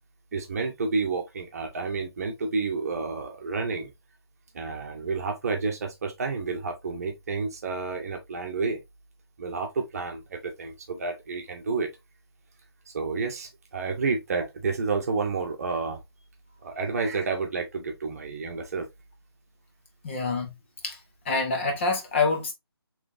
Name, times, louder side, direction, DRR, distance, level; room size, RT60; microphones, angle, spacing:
voice 1, 0.3-3.9 4.5-8.8 9.4-11.9 12.9-16.0 16.6-18.9, right 4 dB, 40° right, 0.9 m, -30 dB
voice 2, 20.0-20.5 20.8-21.0 21.2-22.5, left 3 dB, 30° left, 0.8 m, -26 dB
5.0 x 3.2 x 2.6 m
figure-of-eight pair, 155°, 13 cm